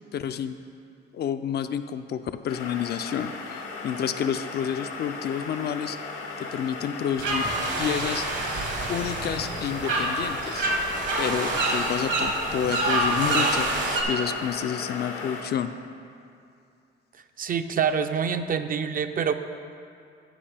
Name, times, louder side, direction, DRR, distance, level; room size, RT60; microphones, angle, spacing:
voice 1, 0.1-0.6 1.1-6.0 6.4-7.5 7.8-8.3 8.9-10.7 11.2-15.7, left 8 dB, 55° left, 10 dB, 0.4 m, -29 dB
sound 1, 2.5-15.4, left 4 dB, 85° left, 0.9 m, -36 dB
sound 2, 7.2-14.0, right 2 dB, 70° right, 1.3 m, -27 dB
voice 2, 17.4-19.3, right 7 dB, 45° right, 9 dB, 0.5 m, -26 dB
14.0 x 5.1 x 3.4 m, 2.5 s
cardioid pair, 90°, 20 cm